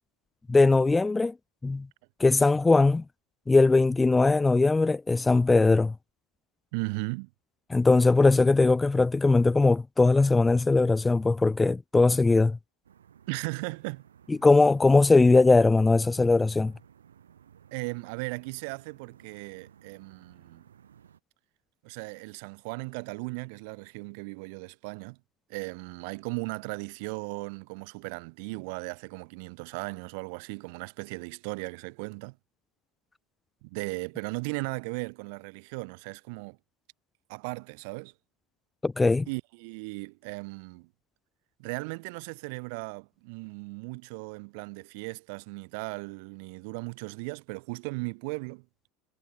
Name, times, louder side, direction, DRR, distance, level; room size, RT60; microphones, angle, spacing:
voice 1, 0.5-1.3 1.6-1.9 2.2-3.0 3.5-5.9 7.7-12.6 14.3-16.7 38.8-39.3, left 3 dB, 15° left, 0.4 m, -20 dB
voice 2, 6.7-7.3 13.3-14.0 17.7-20.6 21.8-25.2 25.5-32.4 33.6-36.6 37.3-38.1 39.3-40.9 41.6-48.6, right 31 dB, 60° right, 1.6 m, -37 dB
sound 1, 12.8-21.2, right 9 dB, 80° right, 2.0 m, -57 dB
figure-of-eight pair, 75°, 0 cm